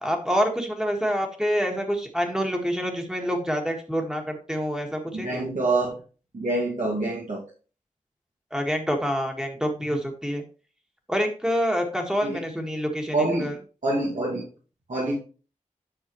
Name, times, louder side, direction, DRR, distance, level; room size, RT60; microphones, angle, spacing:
voice 1, 0.0-5.4 8.5-10.4 11.1-13.5, equal, 5° right, 2 dB, 1.8 m, -27 dB
voice 2, 5.1-6.0 6.3-7.4 12.2-12.4 13.1-14.4 14.9-15.2, right 2 dB, 70° right, -5 dB, 2.2 m, -26 dB
8.9 x 6.2 x 3.1 m, 0.36 s
wide cardioid pair, 75°, 14 cm